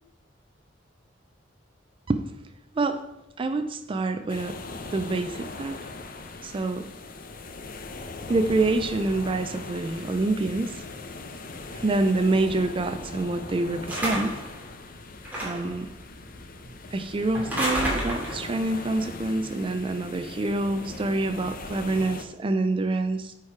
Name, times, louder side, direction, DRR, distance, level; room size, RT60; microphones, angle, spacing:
voice 1, 3.4-4.6 4.9-5.9 6.4-6.9 8.3-10.8 11.7-14.4 15.4-15.9 16.9-23.3, right 2 dB, 30° right, 8 dB, 0.4 m, -26 dB
sound 1, 4.3-22.2, left 3 dB, 50° left, 0.7 m, -40 dB
sound 2, 13.9-14.5 15.3-15.8 17.3-18.5, right 1 dB, 10° right, 2.4 m, -29 dB
9.2 x 4.5 x 4.8 m, 0.93 s
head